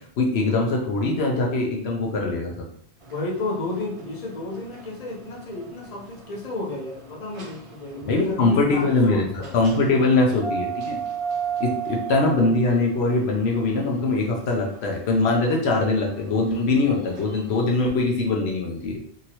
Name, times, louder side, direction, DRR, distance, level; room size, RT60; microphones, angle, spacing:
voice 1, 0.2-2.5 8.1-9.2 9.5-11.0 11.6-18.9, left 3 dB, 70° left, 0 dB, 0.8 m, -22 dB
sound 1, 3.0-17.9, right 7 dB, 55° right, 0.4 m, -37 dB
voice 2, 3.1-10.1, left 2 dB, 40° left, -3 dB, 0.7 m, -32 dB
2.9 x 2.7 x 2.8 m, 0.64 s
omnidirectional pair, 1.1 m